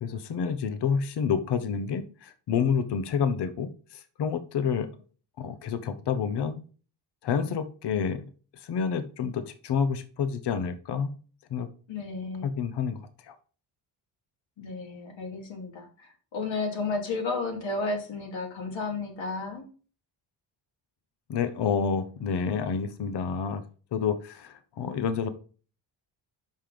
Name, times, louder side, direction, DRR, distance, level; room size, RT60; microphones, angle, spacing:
voice 1, 0.0-4.9 5.4-6.6 7.2-8.2 8.6-11.1 11.5-11.7 12.4-13.0 13.3-13.4 21.3-23.6 23.9-25.3, left 6 dB, 60° left, 12 dB, 0.9 m, -29 dB
voice 2, 11.9-12.5 14.6-19.6, left 3 dB, 80° left, 3 dB, 2.6 m, -33 dB
5.9 x 5.6 x 5.0 m, 0.38 s
wide cardioid pair, 175°, 45 cm